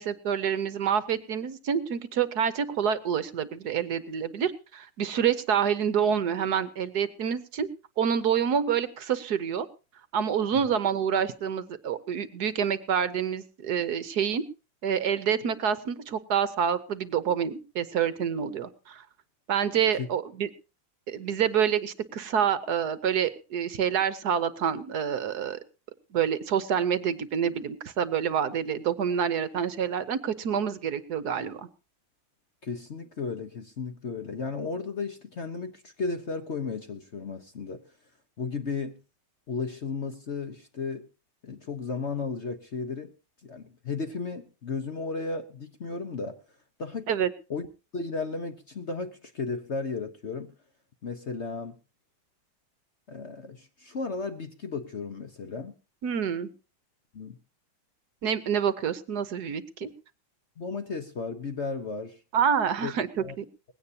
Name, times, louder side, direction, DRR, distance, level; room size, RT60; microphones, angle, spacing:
voice 1, 0.0-7.7 8.0-9.7 10.1-14.4 14.8-19.0 19.5-20.5 21.1-25.6 26.1-31.7 47.1-47.3 56.0-56.5 58.2-59.9 62.3-63.5, right 8 dB, 60° right, 14 dB, 1.3 m, -27 dB
voice 2, 32.6-37.8 38.4-39.0 39.5-41.1 41.4-43.1 43.4-46.4 46.8-47.1 47.5-47.7 47.9-50.5 51.0-51.7 53.1-55.7 57.1-57.4 59.8-59.9 60.6-62.2 62.8-62.9 63.2-63.3, left 4 dB, 45° left, 8 dB, 1.0 m, -34 dB
20.0 x 16.5 x 2.8 m, 0.32 s
omnidirectional pair, 2.1 m